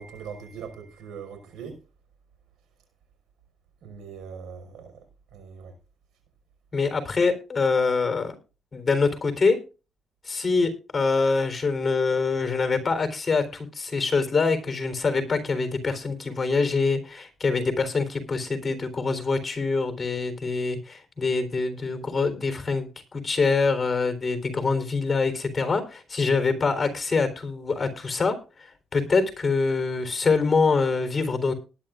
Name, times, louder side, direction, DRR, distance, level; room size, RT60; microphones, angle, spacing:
voice 1, 0.0-1.8 3.8-4.9 5.3-5.7, right 6 dB, 80° right, 5.5 m, -40 dB
voice 2, 6.7-8.3 8.7-9.6 10.2-31.5, left 4 dB, 30° left, 3.8 m, -25 dB
19.0 x 10.5 x 2.5 m
cardioid pair, 90°, 0 cm